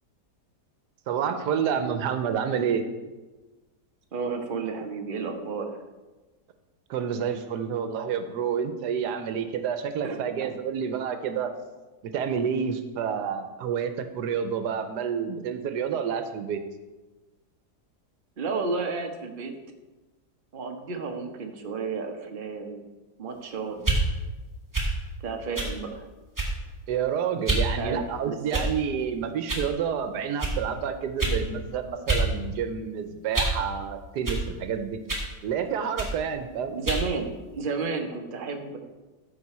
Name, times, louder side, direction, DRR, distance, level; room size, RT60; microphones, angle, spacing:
voice 1, 1.1-2.8 6.9-11.5 12.0-16.6 26.9-35.0 35.4-36.7, right 7 dB, 85° right, 9 dB, 1.3 m, -29 dB
voice 2, 4.1-5.7 10.0-10.5 18.4-19.5 20.5-22.8 23.2-23.8 25.2-26.1 27.8-28.6 36.7-38.8, right 4 dB, 40° right, 3 dB, 1.0 m, -32 dB
sound 1, 23.8-24.0 24.7-24.9 25.5-25.7 26.3-26.7 27.4-27.7 28.5-28.9 29.5-29.7 30.4-30.6 31.2-31.4 32.1-32.3 32.6-33.6 34.2-34.4 35.1-35.3 36.0-36.2 36.8-37.1, right 2 dB, 10° right, 1.6 m, -26 dB
14.0 x 5.3 x 4.2 m, 1.2 s
omnidirectional pair, 1.7 m